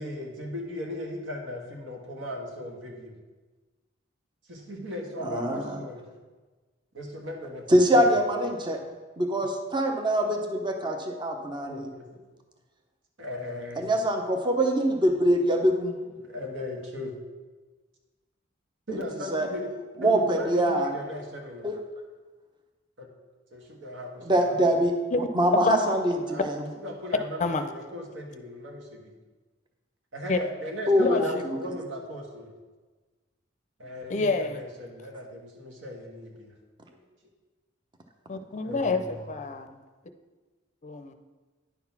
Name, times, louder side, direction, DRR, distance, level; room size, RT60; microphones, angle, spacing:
voice 1, 0.0-3.1 4.5-6.0 6.9-8.1 11.7-12.1 13.2-13.9 16.2-17.1 18.9-19.7 20.0-21.7 23.0-23.1 23.5-24.6 26.3-26.5 26.7-29.0 30.1-32.5 33.8-36.5 36.9-37.0 38.6-39.3, left 1 dB, 75° right, 1 dB, 1.5 m, -37 dB
voice 2, 5.2-5.8 7.7-8.8 9.2-11.9 13.8-16.0 19.3-19.5 20.0-20.9 21.6-21.7 24.3-24.9 25.3-26.6 30.9-31.6, right 1 dB, 25° right, 4 dB, 0.7 m, -24 dB
voice 3, 25.5-25.9 27.4-27.6 30.3-30.4 31.0-31.4 34.1-34.6 38.3-39.8 40.8-41.1, left 3 dB, 40° left, 9 dB, 0.5 m, -28 dB
10.0 x 3.9 x 5.9 m, 1.3 s
head